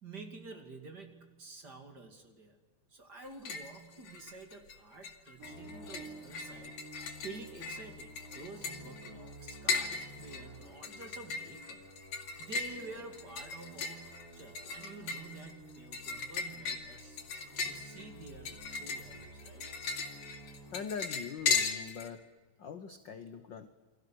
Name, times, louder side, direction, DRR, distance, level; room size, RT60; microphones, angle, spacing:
voice 1, 0.0-2.6 2.9-6.8 7.2-11.9 12.1-17.2 17.6-19.7, right 3 dB, 35° right, 5 dB, 3.0 m, -49 dB
sound 1, 3.2-3.8 4.0-4.7 5.0-22.1, left 5 dB, 75° left, 3.7 m, -37 dB
sound 2, 5.4-20.8, right 1 dB, 50° right, 7.1 m, -52 dB
voice 2, 20.7-22.2 22.6-23.7, left 6 dB, 60° left, 9 dB, 1.2 m, -42 dB
29.0 x 23.5 x 6.4 m, 1.3 s
omnidirectional pair, 3.4 m